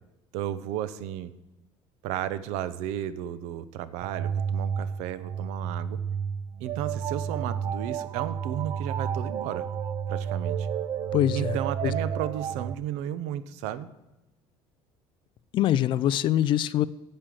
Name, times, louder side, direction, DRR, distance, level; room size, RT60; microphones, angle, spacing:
voice 1, 0.3-1.3 2.0-6.0 6.6-9.7 10.1-10.7 11.3-13.9, right 11 dB, 80° right, 15 dB, 0.8 m, -33 dB
sound 1, 4.0-12.7, right 7 dB, 35° right, 0.4 m, -31 dB
voice 2, 11.1-11.5 11.8-11.9 15.5-16.9, left 12 dB, 45° left, 18 dB, 0.4 m, -23 dB
8.6 x 7.8 x 7.6 m, 0.98 s
cardioid pair, 160°, 12 cm